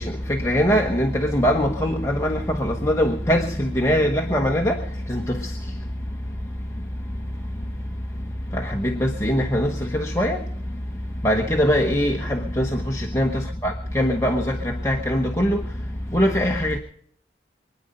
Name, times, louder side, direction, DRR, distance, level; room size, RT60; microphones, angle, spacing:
voice 1, 0.0-4.8 5.1-5.5 8.5-10.4 11.2-15.6 16.1-16.8, equal, 15° left, 1.1 m, -22 dB
24.0 x 9.9 x 5.3 m
head